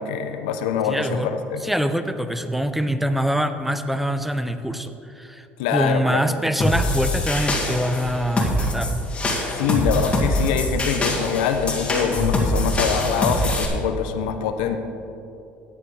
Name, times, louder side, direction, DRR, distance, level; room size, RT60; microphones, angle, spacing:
voice 1, 0.0-1.7 5.6-6.2 9.5-14.8, left 7 dB, 90° left, 7 dB, 0.7 m, -24 dB
voice 2, 0.8-1.3 1.6-9.0, equal, 5° right, 10 dB, 0.6 m, -24 dB
sound 1, 6.6-13.7, left 1 dB, 25° left, 2.0 m, -23 dB
14.0 x 9.2 x 3.3 m, 2.8 s
supercardioid pair, 95°, 5 cm